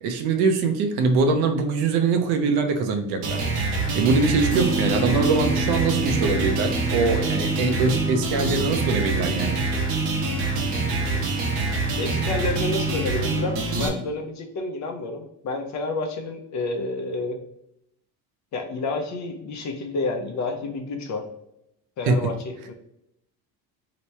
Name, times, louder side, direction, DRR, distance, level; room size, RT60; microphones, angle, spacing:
voice 1, 0.0-3.4 3.9-9.7 22.1-22.2, right 4 dB, 70° right, 6 dB, 0.7 m, -23 dB
sound 1, 3.2-13.9, right 3 dB, 90° right, 1.0 m, -25 dB
sound 2, 4.5-14.1, equal, 20° right, 0.5 m, -33 dB
voice 2, 12.0-17.4 18.5-21.2 22.0-22.7, left 3 dB, 45° left, 3 dB, 0.7 m, -29 dB
3.0 x 2.2 x 4.2 m, 0.79 s
cardioid pair, 120°, 40 cm